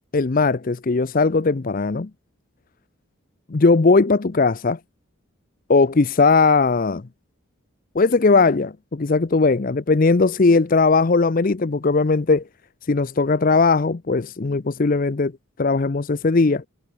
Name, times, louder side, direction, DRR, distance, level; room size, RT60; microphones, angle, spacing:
voice 1, 0.1-2.1 3.5-4.8 5.7-7.0 7.9-12.4 12.9-15.3 15.6-16.6, left 3 dB, 40° left, 0.5 m, -18 dB
head